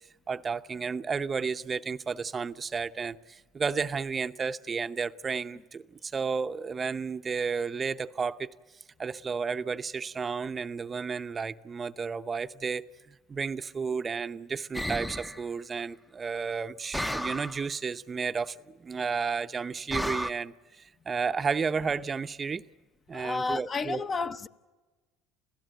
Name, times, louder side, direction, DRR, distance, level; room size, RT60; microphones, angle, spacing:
voice 1, 0.3-8.5 9.0-22.7 23.1-24.0, right 5 dB, 30° right, 0.7 m, -32 dB
sound 1, 14.7-15.4 16.9-17.6 19.9-20.3, equal, 5° left, 0.7 m, -32 dB
voice 2, 23.1-24.5, left 4 dB, 35° left, 0.8 m, -31 dB
29.0 x 16.5 x 9.2 m
supercardioid pair, 100°, 0 cm